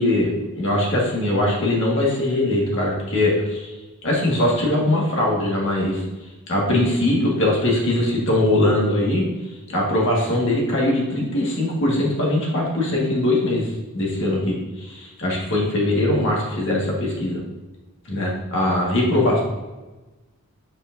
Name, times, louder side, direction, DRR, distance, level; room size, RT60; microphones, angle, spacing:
voice 1, 0.0-3.7 4.0-6.0 6.5-9.2 9.7-17.4 18.0-19.4, left 1 dB, 55° left, -3 dB, 1.7 m, -21 dB
7.2 x 5.1 x 2.6 m, 1.1 s
head